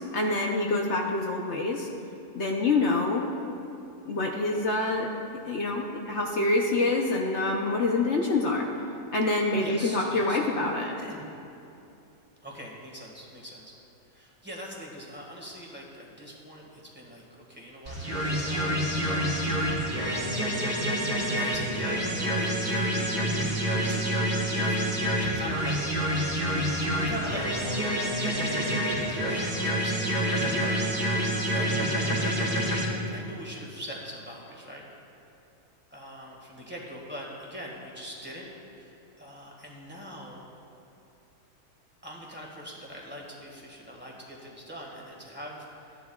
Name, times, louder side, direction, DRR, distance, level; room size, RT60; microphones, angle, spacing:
voice 1, 0.0-1.9 2.4-3.3 4.1-5.1 5.5-8.7 9.1-10.9, left 2 dB, 55° left, 0 dB, 0.9 m, -26 dB
voice 2, 9.5-10.4 11.0-11.3 12.4-13.7 14.1-18.0 18.2-19.3 20.1-20.8 21.4-23.1 23.7-24.1 24.5-25.8 26.7-28.3 28.9-32.3 32.8-34.8 35.9-38.5 38.7-40.4 42.0-46.0, equal, 5° right, -3 dB, 1.7 m, -42 dB
sound 1, 17.8-32.8, equal, 40° right, 2.8 m, -27 dB
16.0 x 11.0 x 2.4 m, 2.7 s
omnidirectional pair, 1.7 m